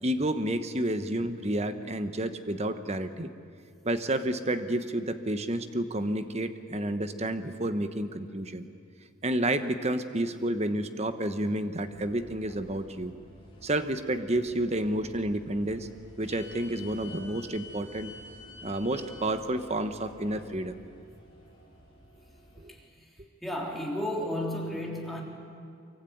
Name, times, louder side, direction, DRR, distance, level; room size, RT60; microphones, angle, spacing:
voice 1, 0.0-3.3 3.8-8.7 9.2-13.1 13.6-15.9 16.2-18.1 18.6-20.7 22.6-22.7, right 1 dB, 30° right, 9 dB, 1.1 m, -30 dB
sound 1, 11.8-22.7, left 2 dB, 25° left, 5.2 m, -50 dB
voice 2, 23.4-25.2, left 1 dB, ahead, -2 dB, 3.3 m, -32 dB
24.5 x 23.5 x 9.3 m, 2.3 s
head